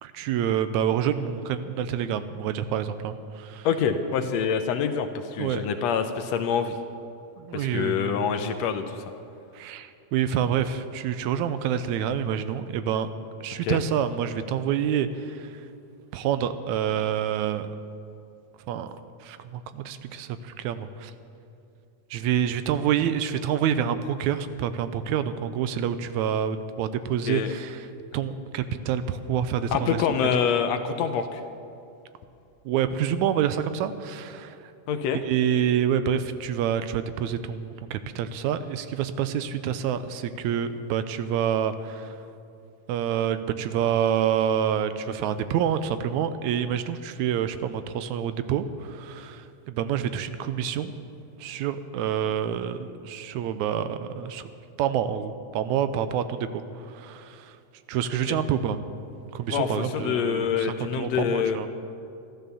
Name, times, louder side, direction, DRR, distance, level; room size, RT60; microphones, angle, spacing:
voice 1, 0.0-3.7 5.4-5.7 7.4-8.2 9.5-13.1 13.4-15.5 16.1-17.7 18.7-18.9 19.2-21.1 22.1-27.9 28.1-30.0 30.3-30.4 32.7-34.7 35.2-42.2 42.9-50.9 51.4-54.5 54.8-57.6 57.9-58.8 59.3-61.7, right 9 dB, 85° right, 12 dB, 2.0 m, -27 dB
voice 2, 3.7-6.8 7.5-9.0 13.6-13.8 27.3-27.5 29.7-31.4 34.9-35.2 58.3-58.4 59.5-61.6, left 7 dB, 75° left, 8 dB, 1.8 m, -26 dB
13.0 x 12.5 x 6.9 m, 2.6 s
omnidirectional pair, 3.4 m